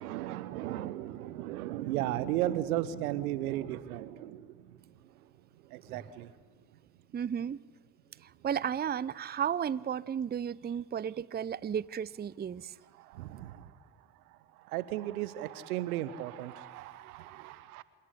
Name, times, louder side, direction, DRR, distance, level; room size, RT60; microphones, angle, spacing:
voice 1, 0.0-5.3 5.6-6.3 12.9-13.8 14.3-17.8, right 13 dB, 80° right, 0.9 m, -36 dB
voice 2, 7.1-7.6 8.2-12.7, right 8 dB, 25° right, 0.6 m, -33 dB
27.5 x 12.5 x 10.0 m
hypercardioid pair, 45°, 43 cm